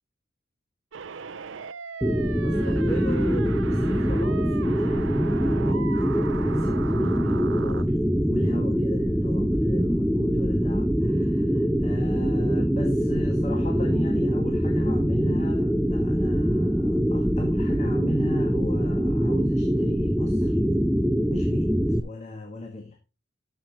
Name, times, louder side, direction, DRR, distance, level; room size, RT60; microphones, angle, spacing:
sound 1, 0.9-7.8, right 6 dB, 75° right, 0.6 m, -38 dB
sound 2, 2.0-22.0, equal, ahead, 0.3 m, -23 dB
voice 1, 2.4-6.0 6.3-8.0 8.3-20.6 21.3-23.0, left 1 dB, 35° left, 1.6 m, -37 dB
13.5 x 5.8 x 3.0 m
head